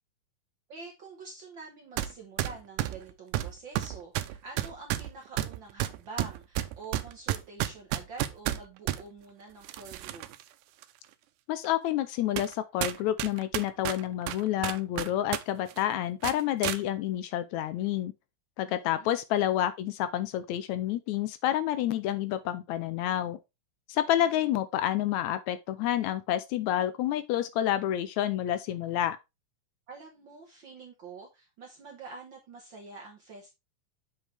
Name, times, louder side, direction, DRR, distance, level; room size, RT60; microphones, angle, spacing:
voice 1, 0.7-10.3 18.6-19.1 29.9-33.5, right 4 dB, 60° right, 1.3 m, -46 dB
sound 1, 2.0-2.1 2.4-9.0 9.6-10.4 10.8-10.9 11.6-11.7 12.4-12.5 12.8-15.4 15.7-15.8 16.2-16.8, right 14 dB, 90° right, 2.1 m, -31 dB
voice 2, 11.5-18.1 18.6-23.4 23.9-29.2, left 12 dB, 80° left, 1.8 m, -29 dB
7.3 x 5.3 x 3.3 m
omnidirectional pair, 3.5 m